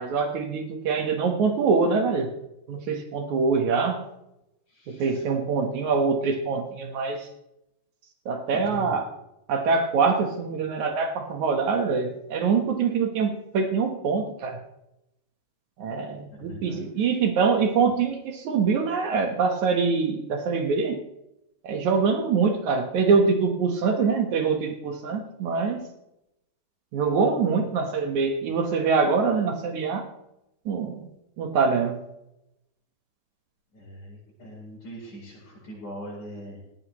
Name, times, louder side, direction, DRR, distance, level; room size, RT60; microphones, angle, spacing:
voice 1, 0.0-2.3 2.7-4.0 4.9-7.3 8.3-9.1 9.5-14.6 15.8-21.0 21.6-25.9 26.9-30.0 30.7-31.1 31.4-32.0, right 5 dB, 65° right, 5 dB, 2.6 m, -24 dB
voice 2, 4.7-5.3 8.5-8.9 16.3-17.1 33.7-36.6, equal, 70° left, -8 dB, 8.2 m, -41 dB
18.0 x 16.5 x 3.1 m, 0.86 s
omnidirectional pair, 3.7 m